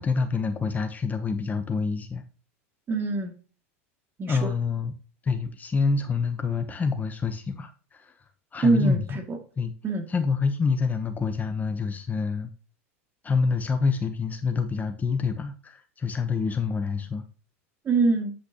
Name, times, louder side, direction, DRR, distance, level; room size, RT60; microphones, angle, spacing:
voice 1, 0.0-2.2 4.3-4.9 5.2-8.1 8.5-9.0 9.6-9.7 10.1-12.5 13.2-17.2, left 4 dB, 20° left, 0.9 m, -27 dB
voice 2, 2.9-3.3 4.2-4.5 8.6-9.4 9.8-10.0 17.8-18.3, right 3 dB, 30° right, 2.3 m, -24 dB
8.2 x 7.8 x 2.9 m
hypercardioid pair, 105°, 8 cm